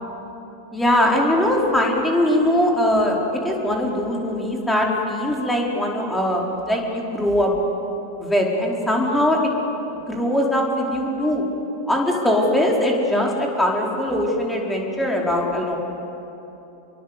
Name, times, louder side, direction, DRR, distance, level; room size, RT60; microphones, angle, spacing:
voice 1, 0.7-7.5 8.2-9.4 10.1-11.4 11.9-15.8, left 1 dB, 5° left, -1 dB, 4.6 m, -21 dB
28.0 x 23.0 x 8.3 m, 2.9 s
figure-of-eight pair, 90°, 0 cm